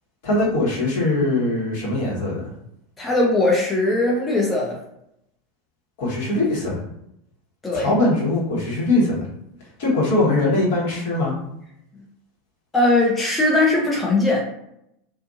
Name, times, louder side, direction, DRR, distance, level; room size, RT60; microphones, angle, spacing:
voice 1, 0.2-2.5 6.0-6.8 7.7-9.3 9.8-11.3, left 2 dB, 60° left, -4 dB, 1.2 m, -21 dB
voice 2, 3.0-4.8 7.6-7.9 12.7-14.4, left 2 dB, 20° left, -3 dB, 0.6 m, -19 dB
2.6 x 2.4 x 2.5 m, 0.78 s
figure-of-eight pair, 85°, 0 cm